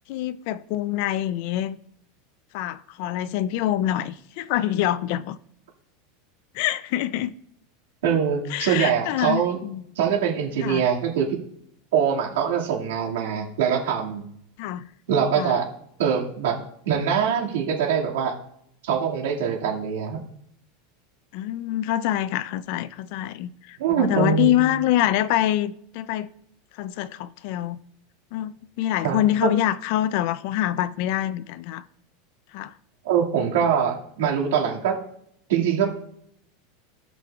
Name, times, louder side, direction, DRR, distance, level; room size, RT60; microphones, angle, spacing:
voice 1, 0.1-1.8 2.5-5.4 6.5-7.3 8.5-9.8 10.6-10.9 14.6-14.9 15.4-15.6 21.3-26.3 26.8-27.8 28.3-31.8 32.5-32.7, left 13 dB, 55° left, 0.4 m, -25 dB
voice 2, 8.0-9.6 10.0-11.3 11.9-14.2 15.1-15.7 16.0-16.6 16.8-18.3 18.8-20.2 23.8-24.6 29.0-29.5 33.0-35.0 35.5-35.9, right 7 dB, 85° right, 2.2 m, -23 dB
17.0 x 6.0 x 2.4 m
supercardioid pair, 160°, 0 cm